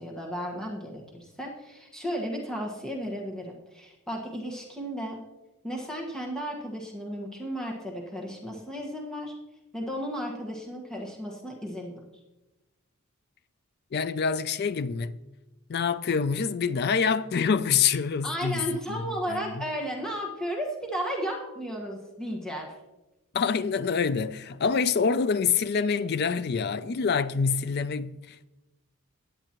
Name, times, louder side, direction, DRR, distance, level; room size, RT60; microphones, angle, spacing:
voice 1, 0.0-5.2 5.6-9.3 9.7-12.0 18.2-22.7, equal, 5° left, 1.4 m, -34 dB
voice 2, 13.9-15.2 15.7-19.7 23.3-28.5, left 6 dB, 50° left, 0.4 m, -26 dB
16.0 x 9.9 x 3.0 m
head